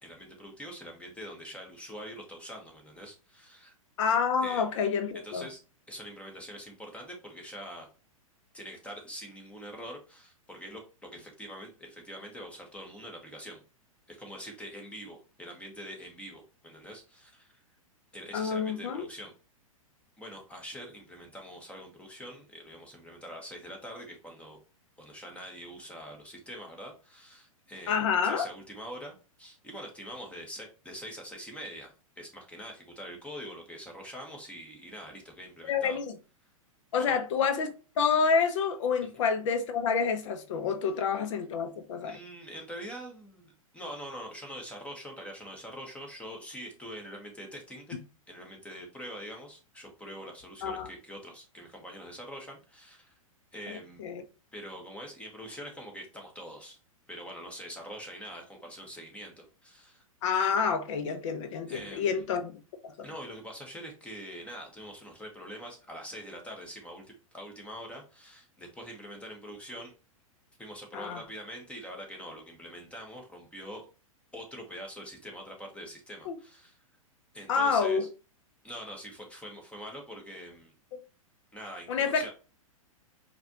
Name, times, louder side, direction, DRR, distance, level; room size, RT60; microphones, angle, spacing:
voice 1, 0.0-3.7 4.4-4.6 5.2-5.6 5.9-7.9 8.5-13.6 14.1-17.5 18.1-19.3 20.2-24.6 25.0-36.0 37.0-37.2 42.0-48.0 48.3-53.1 53.5-54.0 54.5-56.8 57.1-60.0 61.7-62.2 63.0-67.0 67.3-69.9 70.6-73.8 74.3-76.8 77.3-78.1 78.6-80.7 81.5-82.3, equal, 5° left, 1.2 m, -44 dB
voice 2, 4.0-5.5 18.3-19.1 27.9-28.5 35.7-36.1 36.9-42.2 50.6-50.9 53.7-54.2 60.2-63.1 70.9-71.2 76.3-76.4 77.5-78.0 81.9-82.3, left 6 dB, 60° left, 0.7 m, -28 dB
4.7 x 2.5 x 2.9 m
hypercardioid pair, 110°, 18 cm